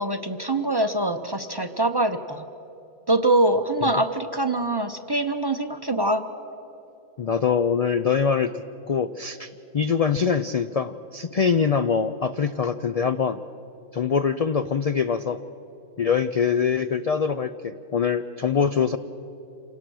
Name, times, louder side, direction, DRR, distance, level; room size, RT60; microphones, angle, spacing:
voice 1, 0.0-2.4 3.1-6.2, right 2 dB, 25° right, 7 dB, 0.6 m, -24 dB
voice 2, 7.2-8.5 8.9-13.4 13.9-15.5 16.0-19.0, left 6 dB, 55° left, 10 dB, 0.4 m, -23 dB
27.0 x 18.0 x 6.2 m, 3.0 s
omnidirectional pair, 1.2 m